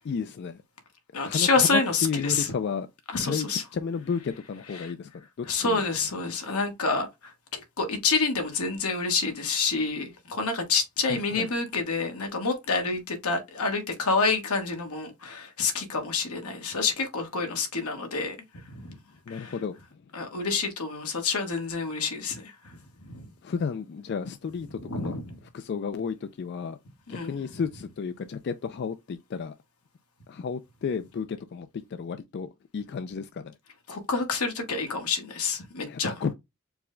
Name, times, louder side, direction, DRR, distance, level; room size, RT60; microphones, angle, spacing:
voice 1, 0.0-0.6 1.2-2.9 3.2-5.8 11.1-11.5 19.3-19.8 23.4-25.1 25.5-26.8 27.1-29.5 30.3-33.6 35.9-36.3, left 6 dB, 50° left, 0.3 m, -32 dB
voice 2, 1.1-2.5 3.1-3.6 4.7-4.9 5.4-18.3 18.7-18.9 19.3-19.5 20.1-22.8 23.1-23.2 24.8-25.4 27.1-27.3 33.9-36.1, left 4 dB, 90° left, 1.3 m, -28 dB
4.7 x 2.1 x 3.7 m
head